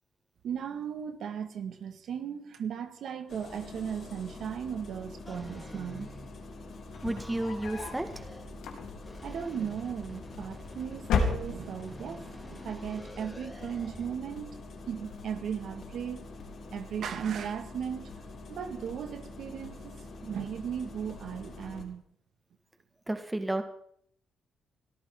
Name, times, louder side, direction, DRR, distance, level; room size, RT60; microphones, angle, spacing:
voice 1, 0.4-6.1 9.2-14.5 14.9-16.2 16.7-18.1 18.5-22.0, right 8 dB, 65° right, 1.9 m, -37 dB
Engine starting, 3.3-21.8, left 3 dB, 55° left, 5.4 m, -46 dB
sound 1, 5.3-6.6 6.9-8.5 9.0-14.2, equal, 5° left, 4.2 m, -48 dB
sound 2, 6.9-8.1 8.5-9.2 10.2-10.7 11.0-11.9, left 5 dB, 85° left, 3.5 m, -31 dB
voice 2, 7.0-8.1 23.1-23.6, right 1 dB, 10° right, 1.7 m, -31 dB
23.5 x 13.5 x 3.8 m
cardioid pair, 90°, 0 cm